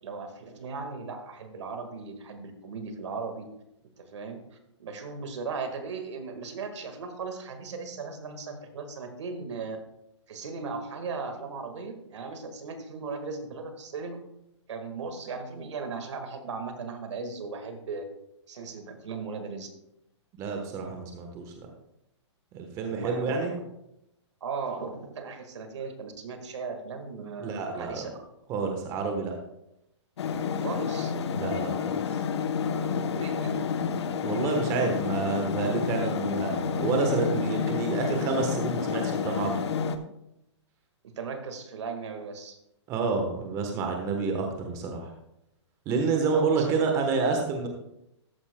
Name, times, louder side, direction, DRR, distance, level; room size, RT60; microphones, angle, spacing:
voice 1, 0.0-3.5 4.0-9.8 10.3-14.2 14.7-18.0 18.5-19.7 22.9-23.5 24.4-28.1 30.6-31.1 33.1-33.6 41.0-42.6 46.3-46.7, right 4 dB, 70° right, 6 dB, 1.7 m, -37 dB
voice 2, 20.4-21.7 22.5-23.5 27.4-28.0 28.5-29.3 31.3-32.0 34.2-39.6 42.9-45.1 45.9-47.7, right 4 dB, 20° right, 3 dB, 1.1 m, -29 dB
sound 1, 30.2-40.0, left 6 dB, 60° left, 0.8 m, -29 dB
13.5 x 9.6 x 2.2 m, 0.83 s
hypercardioid pair, 160°, 16 cm